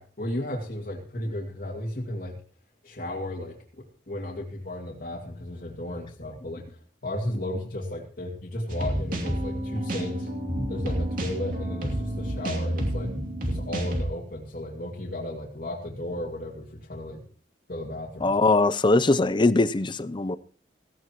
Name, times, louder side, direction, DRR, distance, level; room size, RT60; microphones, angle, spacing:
voice 1, 0.0-2.4 2.8-6.6 7.0-10.3 10.7-13.1 13.4-17.2 17.7-18.3, left 1 dB, 55° left, 2.3 m, -34 dB
sound 1, 8.7-14.0, right 1 dB, 50° right, 2.8 m, -29 dB
voice 2, 18.2-20.4, left 2 dB, 25° left, 0.6 m, -21 dB
17.0 x 15.5 x 3.0 m
head